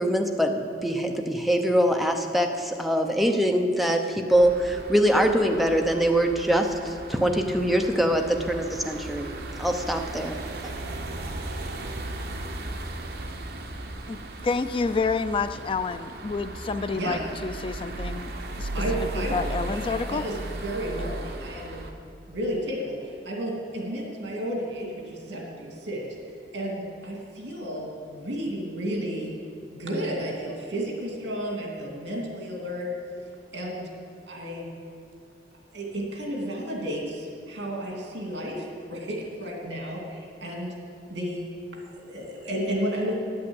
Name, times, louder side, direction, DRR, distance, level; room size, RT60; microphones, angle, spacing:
voice 1, 0.0-9.3 9.6-10.4, equal, ahead, 3 dB, 0.7 m, -23 dB
sound 1, 4.3-21.9, right 2 dB, 60° right, 1.0 m, -36 dB
voice 2, 14.1-18.7 19.0-20.3 21.0-21.1, left 4 dB, 30° left, 12 dB, 0.4 m, -29 dB
voice 3, 16.8-17.2 18.7-21.8 22.3-26.0 26.5-29.3 29.7-32.9 33.5-33.9 34.3-34.7 35.7-40.8 41.1-41.5 41.9-43.2, equal, 80° right, -1 dB, 2.6 m, -32 dB
9.7 x 8.5 x 7.8 m, 2.5 s
head